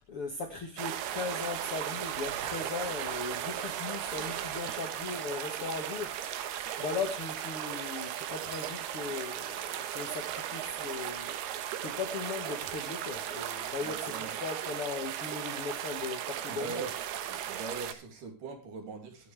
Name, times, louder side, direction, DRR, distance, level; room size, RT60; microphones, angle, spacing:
voice 1, 0.1-6.2 6.8-11.3 11.8-16.9, left 4 dB, 50° left, 1.8 m, -38 dB
sound 1, 0.8-17.9, right 10 dB, 90° right, 3.2 m, -36 dB
voice 2, 13.8-14.4 16.5-16.9 17.3-19.3, right 4 dB, 60° right, 3.9 m, -41 dB
23.5 x 8.4 x 3.3 m
omnidirectional pair, 4.4 m